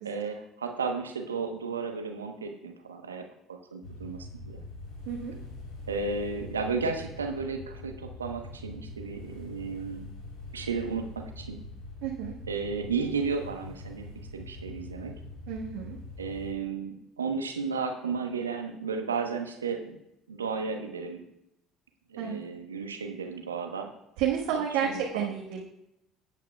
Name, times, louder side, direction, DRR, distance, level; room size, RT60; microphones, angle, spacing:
voice 1, 0.0-4.2 4.4-4.6 5.9-10.1 10.5-11.6 12.5-14.1 14.3-15.1 16.2-20.0 20.3-21.2 22.1-23.9 24.5-25.3, right 5 dB, 85° right, 5 dB, 1.0 m, -33 dB
sound 1, 3.8-16.5, left 2 dB, 70° left, 3.4 m, -43 dB
voice 2, 12.0-12.3 15.5-16.0 22.2-22.4 24.2-25.6, right 8 dB, 65° right, -2 dB, 1.3 m, -31 dB
18.0 x 8.3 x 2.3 m, 0.85 s
figure-of-eight pair, 60°, 0 cm